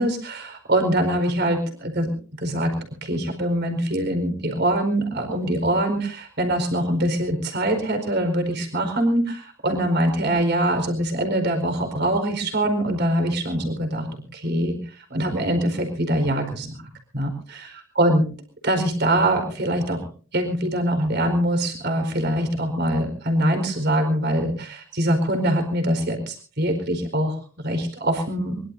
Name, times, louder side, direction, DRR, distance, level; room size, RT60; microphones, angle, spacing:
voice 1, 0.0-2.1 2.4-2.7 3.0-14.1 14.3-14.8 15.1-16.7 17.1-17.7 18.0-18.2 18.6-20.0 20.3-28.6, right 1 dB, 55° right, 6 dB, 4.5 m, -23 dB
23.0 x 22.5 x 2.7 m, 0.39 s
head